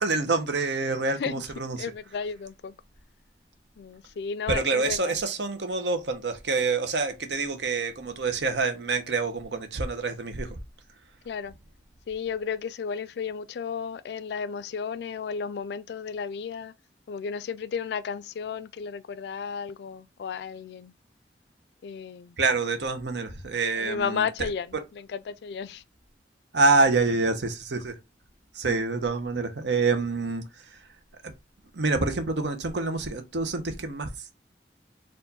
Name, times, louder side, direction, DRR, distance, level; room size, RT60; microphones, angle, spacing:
voice 1, 0.0-1.8 4.5-10.5 22.4-24.3 24.7-24.8 26.5-27.9 28.6-30.4 31.2-31.3 31.7-34.3, right 3 dB, 80° right, 0.9 m, -26 dB
voice 2, 1.8-2.7 3.8-5.2 11.3-11.5 12.1-16.7 17.1-20.9 21.8-22.4 23.8-25.8 28.6-28.8, left 6 dB, 70° left, 0.3 m, -33 dB
4.5 x 2.5 x 4.0 m
head